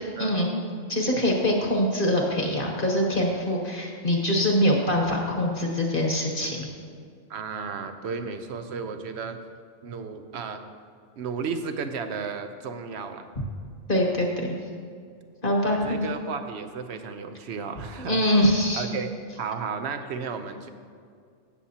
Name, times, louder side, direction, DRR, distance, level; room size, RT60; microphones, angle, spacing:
voice 1, 0.9-6.7 13.9-14.5 15.4-16.0 18.0-18.9, left 1 dB, 45° left, 0 dB, 1.2 m, -24 dB
voice 2, 7.3-9.4 9.8-10.6 11.2-13.3 15.7-18.4 18.7-20.7, right 5 dB, 65° right, 8 dB, 0.9 m, -33 dB
15.5 x 7.1 x 2.8 m, 2.2 s
omnidirectional pair, 1.3 m